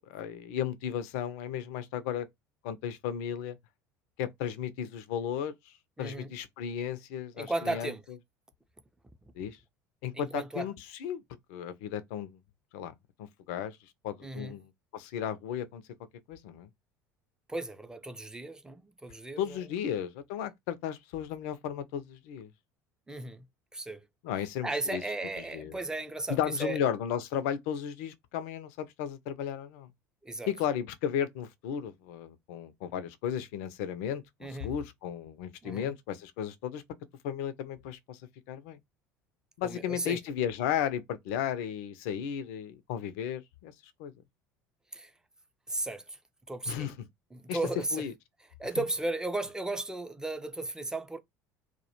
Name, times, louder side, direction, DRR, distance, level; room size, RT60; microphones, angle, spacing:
voice 1, 0.1-2.3 2.6-3.6 4.2-5.5 6.0-7.9 9.4-9.6 10.0-11.2 11.5-12.3 12.7-12.9 13.2-13.8 14.0-15.8 16.3-16.7 19.4-22.5 24.2-25.0 25.5-25.8 26.3-29.9 30.5-36.8 37.2-38.2 38.5-38.8 39.6-43.7 44.0-44.1 46.7-46.9 47.5-47.6 47.9-48.1, left 9 dB, 60° left, 0.4 m, -34 dB
voice 2, 6.0-6.3 7.3-8.0 10.1-10.7 14.2-14.6 17.5-19.6 23.1-23.4 23.7-24.0 24.6-26.8 30.2-30.5 34.4-34.7 35.6-35.9 39.6-40.2 44.9-45.1 45.7-46.2 46.5-46.9 47.3-48.1 48.6-51.2, right 2 dB, 5° right, 0.4 m, -35 dB
2.2 x 2.1 x 2.8 m
figure-of-eight pair, 65°, 9 cm